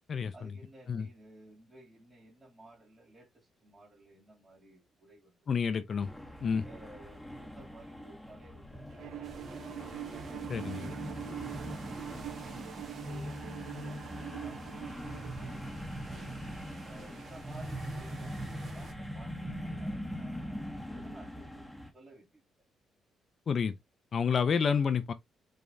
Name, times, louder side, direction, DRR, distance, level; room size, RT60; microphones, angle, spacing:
voice 1, 0.3-5.4 6.6-9.8 10.3-12.5 13.0-15.6 15.9-16.3 16.9-22.4, right 2 dB, 20° right, 2.7 m, -56 dB
voice 2, 5.5-6.1 6.4-6.6 10.5-10.8 23.5-23.7 24.1-25.1, left 6 dB, 50° left, 0.6 m, -29 dB
sound 1, 6.0-21.9, equal, ahead, 1.2 m, -41 dB
Bowed string instrument, 9.0-15.6, right 14 dB, 80° right, 0.4 m, -44 dB
sound 2, 9.2-18.9, right 4 dB, 55° right, 1.2 m, -52 dB
5.1 x 3.5 x 2.7 m
cardioid pair, 90°, 0 cm